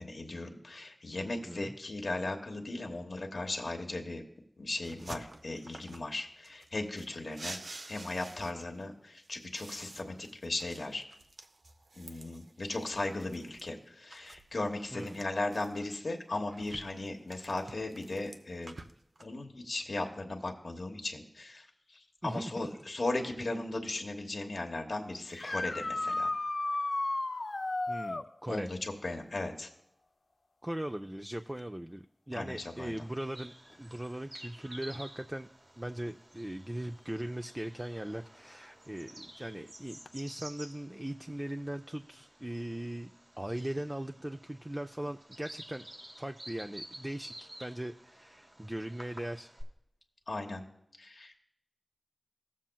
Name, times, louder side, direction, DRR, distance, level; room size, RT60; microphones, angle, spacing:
voice 1, 0.0-4.2 4.6-7.6 7.9-11.0 12.0-18.8 19.2-21.7 22.2-26.3 28.5-29.7 32.3-33.0 50.3-50.6 51.0-51.3, left 2 dB, 75° left, 3 dB, 1.1 m, -37 dB
voice 2, 1.4-1.8 14.9-15.2 22.2-22.7 27.9-28.7 30.6-35.5 35.8-45.9 46.2-49.5, right 1 dB, 20° right, 6 dB, 0.3 m, -39 dB
sound 1, 4.8-6.1 6.4-8.8 9.2-13.7 14.1-15.9 16.3-19.2, right 2 dB, 75° right, 0.5 m, -49 dB
sound 2, 25.3-28.3 31.6-31.7 33.7-33.8 40.1-40.2, left 2 dB, 55° left, 0.4 m, -33 dB
Bird vocalization bird call bird song, 32.6-49.6, right 1 dB, 50° right, 1.9 m, -52 dB
16.0 x 7.4 x 2.3 m, 0.78 s
wide cardioid pair, 60°, 0 cm